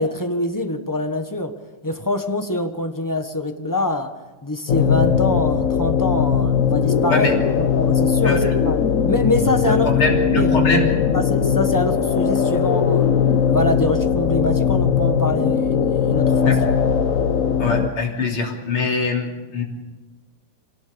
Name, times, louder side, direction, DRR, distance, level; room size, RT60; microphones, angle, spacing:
voice 1, 0.0-1.5 1.8-4.1 4.4-7.3 7.6-8.8 9.0-9.9 10.3-10.5 11.1-16.5, left 1 dB, 10° left, 6 dB, 1.1 m, -24 dB
sound 1, 4.7-17.9, left 7 dB, 50° left, 1.1 m, -19 dB
voice 2, 9.6-10.9 16.4-16.6 17.6-19.6, left 3 dB, 75° left, 0 dB, 4.1 m, -22 dB
24.5 x 18.5 x 7.0 m, 1.2 s
omnidirectional pair, 2.4 m